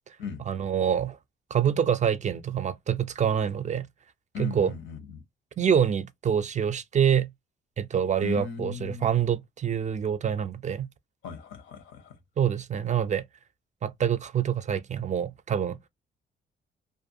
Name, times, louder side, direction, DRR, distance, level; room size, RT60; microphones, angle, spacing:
voice 1, 0.5-1.2 1.5-3.9 4.4-4.7 5.6-7.3 7.8-10.9 12.4-13.2 13.8-15.8, right 8 dB, 35° right, 0.4 m, -26 dB
voice 2, 4.3-5.2 8.2-9.2 11.2-12.2, left 6 dB, 75° left, 0.8 m, -37 dB
2.5 x 2.3 x 2.5 m
cardioid pair, 90°, 20 cm